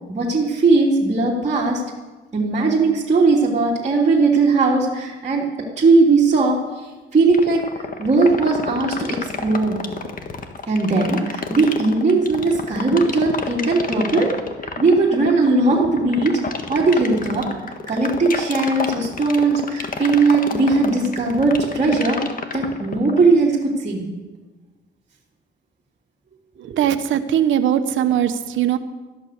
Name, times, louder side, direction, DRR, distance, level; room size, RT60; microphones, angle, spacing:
voice 1, 0.1-1.8 2.3-9.8 10.7-14.3 14.8-16.4 16.7-17.5 17.9-22.2 22.5-24.0 26.7-26.8, right 3 dB, 35° right, -5 dB, 3.0 m, -18 dB
sound 1, 7.3-23.3, left 5 dB, 45° left, 1.7 m, -28 dB
voice 2, 26.6-28.8, right 10 dB, 75° right, 10 dB, 1.2 m, -20 dB
14.0 x 12.0 x 6.7 m, 1.2 s
cardioid pair, 90°, 20 cm